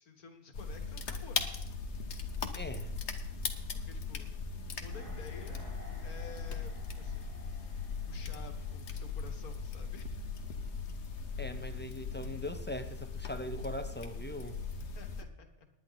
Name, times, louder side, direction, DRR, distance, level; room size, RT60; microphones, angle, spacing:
voice 1, 0.0-1.5 3.7-4.3 4.8-5.7 6.0-7.7 8.0-10.3 14.8-15.7, left 4 dB, 85° left, 6 dB, 2.0 m, -52 dB
sound 1, 0.5-15.2, left 5 dB, 55° left, 1.3 m, -39 dB
voice 2, 2.5-2.9 11.4-14.6, left 1 dB, 10° left, 8 dB, 0.7 m, -41 dB
sound 2, 4.6-9.7 10.0-10.1, right 2 dB, 50° right, 3.0 m, -54 dB
19.0 x 9.8 x 4.0 m, 0.82 s
omnidirectional pair, 1.5 m